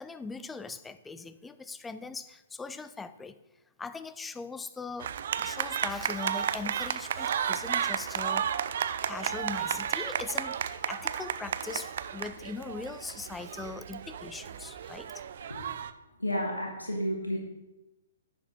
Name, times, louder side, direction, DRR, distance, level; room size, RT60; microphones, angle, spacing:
voice 1, 0.0-3.4 3.8-8.5 9.0-15.1, left 4 dB, 10° left, 12 dB, 0.4 m, -40 dB
sound 1, 5.0-15.9, right 8 dB, 55° right, 0.4 m, -33 dB
voice 2, 16.2-17.4, equal, 90° left, -1 dB, 1.8 m, -31 dB
10.5 x 6.8 x 4.0 m, 0.97 s
figure-of-eight pair, 120°, 0 cm